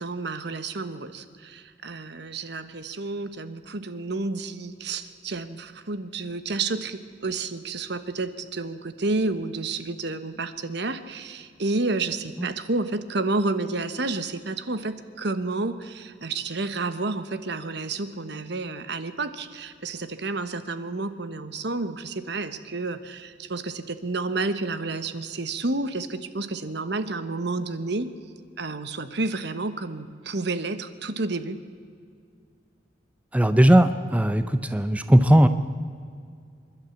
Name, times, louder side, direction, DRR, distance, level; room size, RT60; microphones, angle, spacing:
voice 1, 0.0-28.1 28.6-31.6, right 3 dB, 65° right, 11 dB, 1.2 m, -30 dB
voice 2, 33.3-35.5, right 1 dB, 10° right, 10 dB, 0.6 m, -18 dB
26.5 x 12.0 x 8.4 m, 2.2 s
head